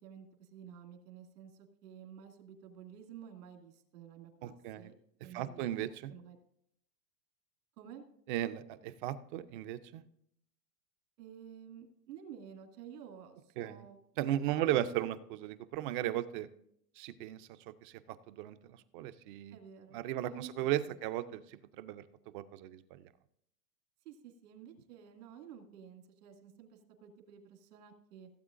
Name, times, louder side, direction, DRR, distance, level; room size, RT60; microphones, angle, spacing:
voice 1, 0.0-4.9 5.2-6.4 7.8-8.0 11.2-14.0 14.5-15.1 19.5-21.0 24.0-28.3, right 8 dB, 75° right, 3 dB, 2.2 m, -52 dB
voice 2, 4.4-4.9 5.2-6.1 8.3-10.0 13.6-13.8 14.2-16.5 17.0-17.5 17.8-19.6 19.9-22.0 22.3-23.0, right 13 dB, 35° right, 13 dB, 0.4 m, -36 dB
16.5 x 7.9 x 2.5 m, 0.71 s
supercardioid pair, 140°, 47 cm